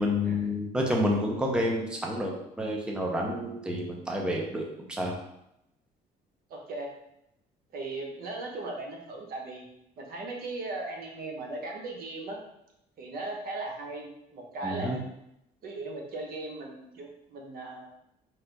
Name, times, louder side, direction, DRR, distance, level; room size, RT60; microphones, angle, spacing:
voice 1, 0.0-5.2 14.6-15.0, left 1 dB, 5° right, -1 dB, 0.6 m, -29 dB
voice 2, 6.5-6.9 7.7-9.7 10.0-12.4 13.0-15.0 15.6-17.9, right 2 dB, 60° right, 1 dB, 0.9 m, -38 dB
3.3 x 2.5 x 4.5 m, 0.82 s
cardioid pair, 110°, 17 cm